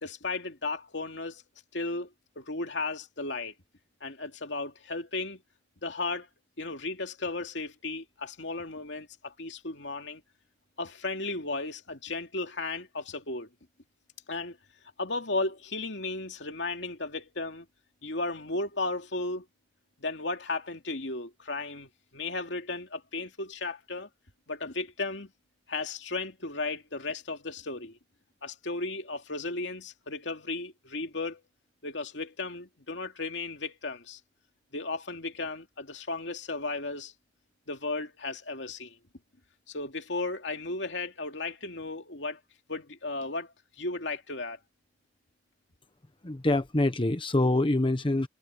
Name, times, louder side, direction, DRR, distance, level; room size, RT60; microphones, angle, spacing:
voice 1, 0.0-1.4 1.7-2.1 2.4-3.5 4.0-5.4 5.8-6.3 6.6-10.2 10.8-13.5 14.3-14.6 15.0-17.7 18.0-19.5 20.0-24.1 24.5-25.3 25.7-28.0 28.4-31.4 31.8-34.2 34.7-37.1 37.7-39.0 39.7-42.4 42.7-44.6, left 3 dB, 75° left, 2.6 m, -35 dB
voice 2, 46.2-48.3, left 2 dB, 30° left, 0.9 m, -25 dB
head